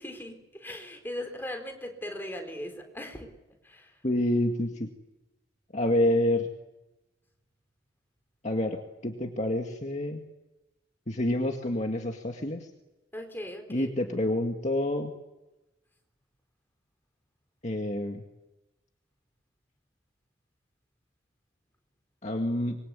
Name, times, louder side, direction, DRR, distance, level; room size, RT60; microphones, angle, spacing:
voice 1, 0.0-3.3 3.6-4.0 13.1-13.9, left 1 dB, 10° left, 4 dB, 4.2 m, -39 dB
voice 2, 4.0-4.9 5.7-6.5 8.4-8.8 9.0-10.2 11.1-12.7 13.7-15.1 17.6-18.2 22.2-22.8, left 1 dB, 35° left, 3 dB, 2.1 m, -28 dB
26.0 x 23.5 x 8.4 m, 0.99 s
head